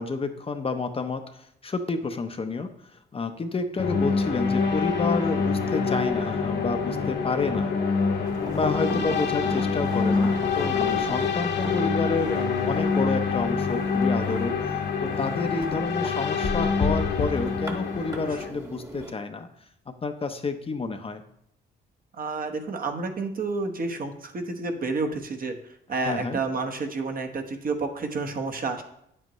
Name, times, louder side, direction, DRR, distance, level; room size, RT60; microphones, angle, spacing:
voice 1, 0.0-2.7 3.1-7.7 8.5-14.7 15.0-19.5 20.0-21.2 25.9-26.4, left 3 dB, 30° left, 6 dB, 0.7 m, -29 dB
sound 1, 3.8-18.5, left 5 dB, 55° left, 1.2 m, -26 dB
sound 2, 8.2-19.1, right 1 dB, 15° right, 1.3 m, -39 dB
voice 2, 22.2-25.6 25.9-28.8, right 3 dB, 45° right, 5 dB, 1.1 m, -30 dB
9.0 x 7.7 x 3.1 m, 0.76 s
cardioid pair, 90°, 20 cm